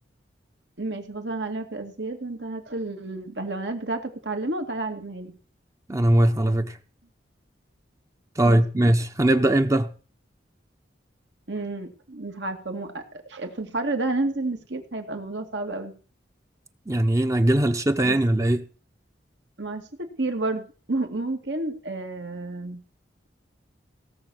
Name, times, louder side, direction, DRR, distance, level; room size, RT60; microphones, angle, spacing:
voice 1, 0.8-5.4 8.4-8.9 11.5-16.0 18.0-18.2 19.6-19.8 20.2-22.8, right 2 dB, 80° right, 2.3 m, -31 dB
voice 2, 5.9-6.8 8.4-9.9 16.9-18.6, right 1 dB, 20° right, 0.7 m, -20 dB
17.0 x 6.9 x 6.3 m
head